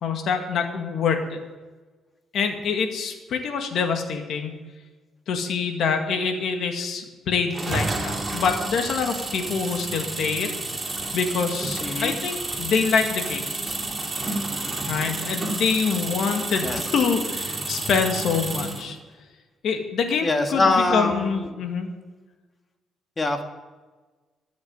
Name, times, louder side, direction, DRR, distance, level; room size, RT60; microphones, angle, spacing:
voice 1, 0.0-1.4 2.3-4.5 5.3-10.5 11.1-13.5 14.9-19.0 19.6-21.9, left 5 dB, 65° left, 5 dB, 2.0 m, -25 dB
sound 1, 7.5-18.9, right 2 dB, 20° right, 2.6 m, -30 dB
voice 2, 11.8-12.1 16.6-16.8 20.2-21.4 23.2-23.4, left 2 dB, 25° left, 5 dB, 1.6 m, -23 dB
13.5 x 7.4 x 9.5 m, 1.3 s
cardioid pair, 115°, 0 cm